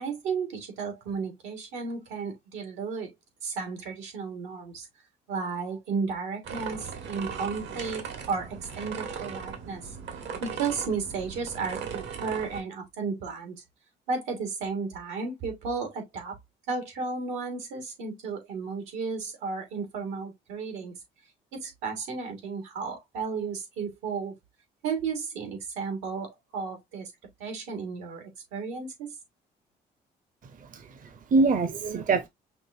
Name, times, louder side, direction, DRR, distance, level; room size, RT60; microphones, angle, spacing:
voice 1, 0.0-3.1 3.4-4.9 5.3-10.0 10.4-13.6 14.1-16.4 16.7-20.9 21.5-24.4 24.8-27.1 27.4-29.1, right 5 dB, 90° right, 2.0 m, -33 dB
sound 1, 6.4-12.6, right 6 dB, 70° right, 1.4 m, -38 dB
voice 2, 30.7-32.3, right 3 dB, 45° right, 0.8 m, -25 dB
5.8 x 2.7 x 2.7 m
supercardioid pair, 70°, 19 cm